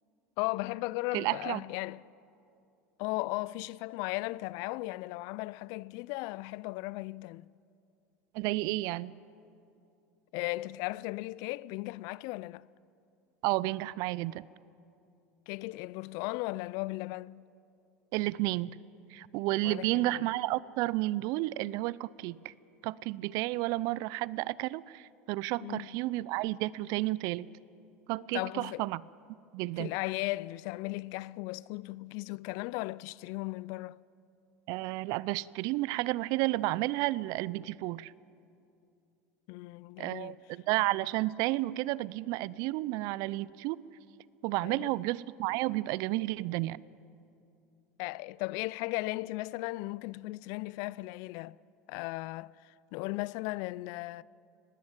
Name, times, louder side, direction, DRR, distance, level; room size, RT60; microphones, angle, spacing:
voice 1, 0.4-2.0 3.0-7.5 10.3-12.7 15.5-17.4 19.6-20.3 25.6-25.9 28.3-28.9 29.8-34.0 39.5-40.4 44.6-44.9 48.0-51.6 51.9-54.2, left 21 dB, 60° left, 0.4 m, -36 dB
voice 2, 1.1-1.6 8.3-9.1 13.4-14.5 18.1-18.8 19.1-22.5 22.8-27.5 28.1-29.0 29.5-29.9 34.7-38.1 40.0-43.8 44.4-46.8, right 19 dB, 60° right, 0.5 m, -31 dB
20.0 x 17.0 x 9.0 m
hypercardioid pair, 85°, 7 cm